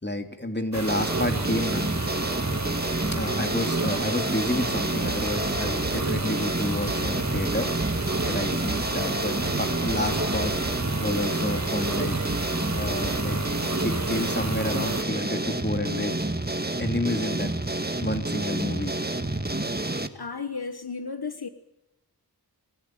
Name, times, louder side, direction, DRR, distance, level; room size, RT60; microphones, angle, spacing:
voice 1, 0.0-1.9 3.1-7.7 8.2-10.5 11.0-12.2 12.7-13.4 13.8-16.1 16.8-17.5 18.0-18.9, left 1 dB, 25° left, 5 dB, 3.3 m, -30 dB
sound 1, 0.7-15.0, right 3 dB, 45° right, 1.9 m, -31 dB
sound 2, 0.9-20.1, right 2 dB, 25° right, 1.7 m, -29 dB
sound 3, 4.6-14.2, right 3 dB, 65° right, 2.6 m, -38 dB
voice 2, 20.1-21.5, left 5 dB, 70° left, 9 dB, 1.3 m, -33 dB
27.5 x 16.5 x 9.3 m, 0.94 s
wide cardioid pair, 50°, 39 cm